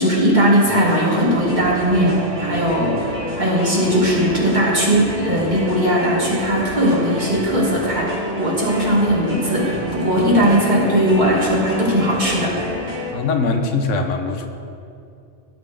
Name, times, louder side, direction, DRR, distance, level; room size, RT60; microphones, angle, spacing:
voice 1, 0.0-3.1 3.4-12.6, equal, 40° right, -6 dB, 2.4 m, -18 dB
sound 1, 0.6-13.1, right 1 dB, 20° right, 1.4 m, -29 dB
voice 2, 13.1-14.5, left 3 dB, 85° left, 5 dB, 1.2 m, -21 dB
16.5 x 6.8 x 3.5 m, 2.5 s
omnidirectional pair, 1.3 m